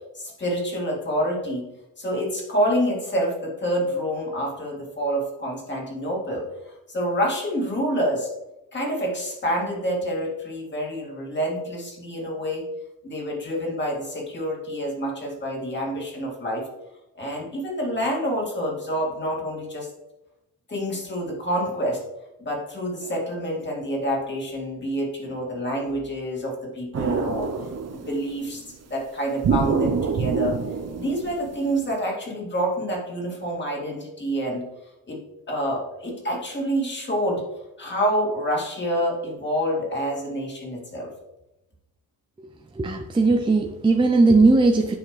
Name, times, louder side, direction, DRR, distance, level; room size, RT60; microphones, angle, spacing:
voice 1, 0.1-1.6 2.0-8.3 8.7-12.6 13.0-16.6 17.2-19.9 20.7-22.0 22.4-28.6 28.9-30.6 30.9-34.6 35.1-35.2 35.5-37.4 37.8-41.1, equal, 30° left, -2 dB, 2.3 m, -27 dB
sound 1, 26.9-28.4 29.4-31.9, right 5 dB, 45° right, 0.7 m, -26 dB
voice 2, 42.8-45.0, right 3 dB, 15° right, 3 dB, 0.5 m, -18 dB
9.5 x 5.7 x 3.2 m, 0.93 s
wide cardioid pair, 155°, 36 cm